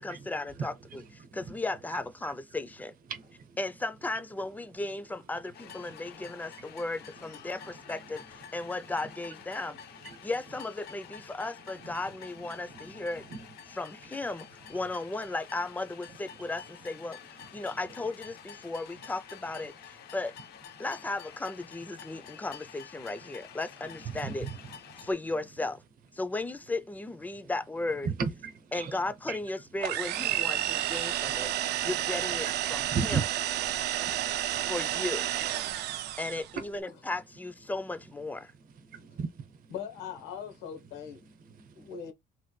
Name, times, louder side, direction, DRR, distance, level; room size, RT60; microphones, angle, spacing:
voice 1, 0.0-2.9 3.6-9.8 10.2-13.3 13.7-20.3 20.8-24.5 25.0-25.8 26.1-28.1 28.7-31.5 31.8-33.2 34.7-35.3 36.2-38.5, left 2 dB, 10° left, 0.3 m, -35 dB
voice 2, 1.2-1.5 3.1-3.6 5.9-6.3 10.0-10.3 11.8-11.9 12.7-13.4 13.7-13.8 17.6-17.7 24.0-24.5 24.9-25.1 27.3-27.4 28.0-29.0 29.3-29.4 30.3-30.4 31.4-31.9 32.6-33.2 33.7-34.6 35.7-36.1 38.9-39.7 41.4-42.0, right 5 dB, 55° right, 0.8 m, -37 dB
sound 1, 5.5-25.1, left 9 dB, 70° left, 0.5 m, -49 dB
sound 2, 29.8-36.5, right 12 dB, 75° right, 0.4 m, -31 dB
voice 3, 39.7-41.3 41.7-42.1, left 8 dB, 90° left, 1.0 m, -41 dB
3.2 x 2.2 x 3.1 m
cardioid pair, 110°, 17 cm